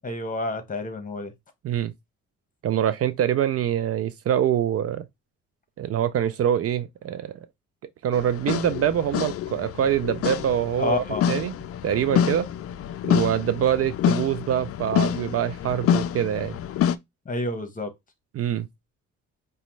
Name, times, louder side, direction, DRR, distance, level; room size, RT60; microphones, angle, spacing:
voice 1, 0.0-1.3 10.8-11.3 17.2-17.9, left 3 dB, 25° left, 1.2 m, -29 dB
voice 2, 2.6-5.0 5.8-7.3 8.0-11.6 11.8-12.5 13.1-16.5 18.3-18.7, right 10 dB, 50° right, 0.4 m, -24 dB
sound 1, 8.1-17.0, left 9 dB, 50° left, 0.4 m, -27 dB
5.0 x 2.3 x 3.1 m
cardioid pair, 90°, 30 cm